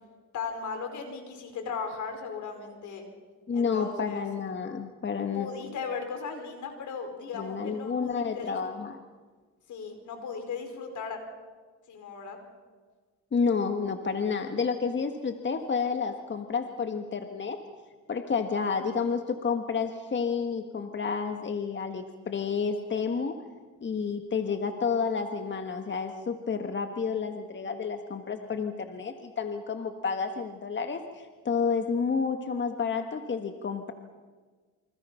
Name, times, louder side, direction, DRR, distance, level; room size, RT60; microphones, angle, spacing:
voice 1, 0.3-3.1 3.5-4.2 5.3-8.6 9.7-11.2 11.9-12.4, left 5 dB, 75° left, 5 dB, 5.0 m, -37 dB
voice 2, 3.5-5.5 7.3-9.0 13.3-17.6 18.1-23.4 23.8-33.9, left 5 dB, 40° left, 6 dB, 1.6 m, -30 dB
28.5 x 25.0 x 5.8 m, 1.5 s
cardioid pair, 90°, 30 cm